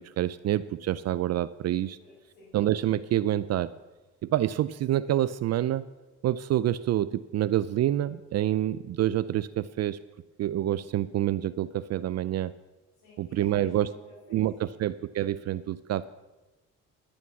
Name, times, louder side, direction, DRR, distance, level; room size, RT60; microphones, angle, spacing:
voice 1, 0.0-2.0 2.5-3.7 4.2-5.9 6.2-10.0 10.4-12.5 13.2-13.9 14.3-16.1, right 12 dB, 60° right, 16 dB, 0.4 m, -27 dB
voice 2, 2.0-2.5 13.0-14.8, left 2 dB, 90° left, -8 dB, 4.9 m, -54 dB
11.0 x 8.5 x 5.8 m, 1.1 s
cardioid pair, 90°, 30 cm